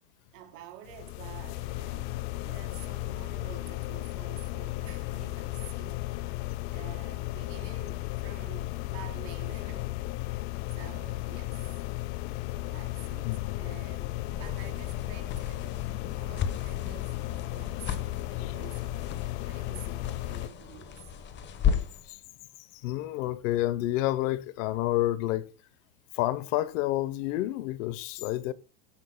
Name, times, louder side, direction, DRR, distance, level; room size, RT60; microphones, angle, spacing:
voice 1, 0.3-6.0 6.3-9.9 10.7-11.6 12.6-15.7 16.1-19.0 19.4-21.1, right 11 dB, 60° right, 3.4 m, -49 dB
sound 1, 0.9-20.5, left 18 dB, 45° left, 0.6 m, -35 dB
voice 2, 13.2-13.6 18.4-18.5 22.0-22.2 22.7-25.5 26.1-28.5, left 15 dB, 60° left, 0.9 m, -29 dB
sound 2, 14.0-22.1, left 7 dB, 25° left, 1.1 m, -35 dB
22.0 x 10.0 x 2.2 m
cardioid pair, 170°, 43 cm